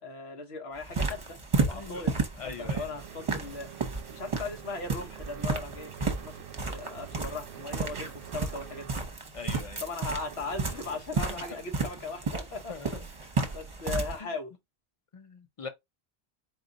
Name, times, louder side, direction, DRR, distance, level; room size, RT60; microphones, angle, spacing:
voice 1, 0.0-1.4 1.7-2.1 2.4-3.7 4.1-8.9 9.8-14.5, left 3 dB, 85° left, 1.3 m, -38 dB
sound 1, 0.8-14.2, right 4 dB, 35° right, 0.8 m, -33 dB
voice 2, 1.7-2.1 2.4-2.9 9.3-9.8 11.3-11.4 12.7-13.0 13.4-13.5 14.2-14.3 15.1-15.7, left 4 dB, 35° left, 0.7 m, -42 dB
sound 2, 2.3-9.1 10.0-11.2, right 10 dB, 65° right, 0.7 m, -48 dB
4.3 x 2.4 x 3.9 m
omnidirectional pair, 1.0 m